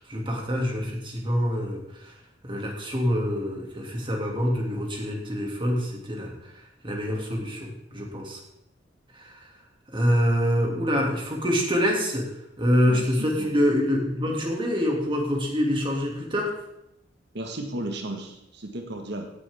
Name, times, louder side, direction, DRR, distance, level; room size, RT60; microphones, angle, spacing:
voice 1, 0.0-2.2 2.4-8.4 9.1-9.5 9.9-12.3 12.6-16.5, equal, 25° right, 0 dB, 2.5 m, -26 dB
voice 2, 12.8-13.5 17.3-19.3, right 1 dB, 60° right, 3 dB, 1.6 m, -34 dB
16.0 x 10.0 x 3.7 m, 0.81 s
head